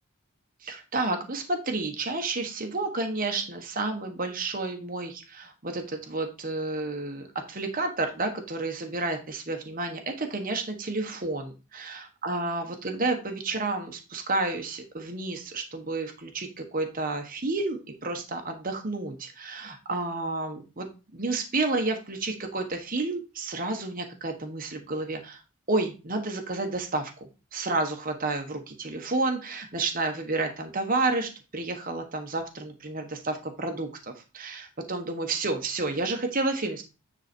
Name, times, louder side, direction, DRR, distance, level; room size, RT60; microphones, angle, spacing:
voice 1, 0.6-25.4 25.7-27.1 27.5-36.8, right 3 dB, 40° right, 4 dB, 1.3 m, -30 dB
9.5 x 4.0 x 4.4 m, 0.30 s
head